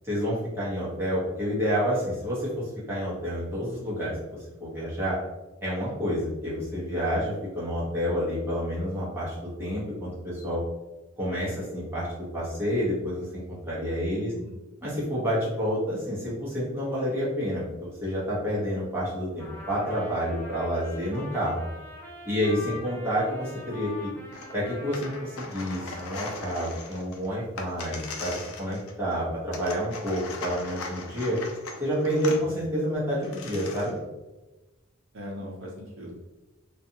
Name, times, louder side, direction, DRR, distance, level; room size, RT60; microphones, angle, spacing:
voice 1, 0.0-5.2 5.6-10.6 11.2-14.3 14.8-21.6 22.3-24.1 24.5-31.4 31.8-34.0, equal, 10° right, -8 dB, 0.9 m, -29 dB
voice 2, 14.0-14.5 22.4-22.7 32.4-32.6 35.1-36.2, equal, 65° right, -1 dB, 0.7 m, -40 dB
Trumpet, 19.4-26.6, left 2 dB, 10° left, 0.5 m, -44 dB
sound 1, 24.3-24.5 24.9-29.1 29.5-32.4 32.9-33.0 33.2-34.0, left 3 dB, 85° left, 0.4 m, -39 dB
2.5 x 2.3 x 2.7 m, 1.1 s
head